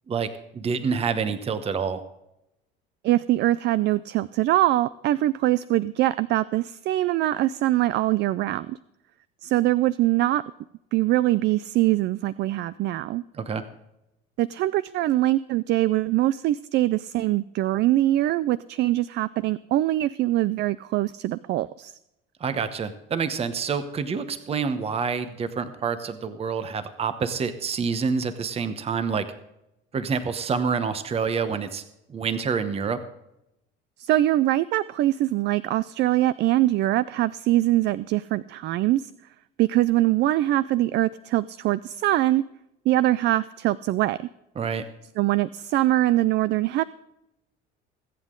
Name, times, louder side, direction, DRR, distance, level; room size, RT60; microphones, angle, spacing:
voice 1, 0.5-2.0 13.3-13.6 22.4-29.2 29.9-31.8 32.1-33.0 44.6-44.8, right 5 dB, 30° right, 11 dB, 1.0 m, -27 dB
voice 2, 3.0-8.8 9.4-10.4 10.9-13.2 14.4-21.9 34.0-39.1 39.6-42.4 42.9-44.2 45.2-46.8, right 15 dB, 55° right, 17 dB, 0.4 m, -23 dB
22.5 x 8.2 x 3.8 m, 0.86 s
cardioid pair, 115°, 21 cm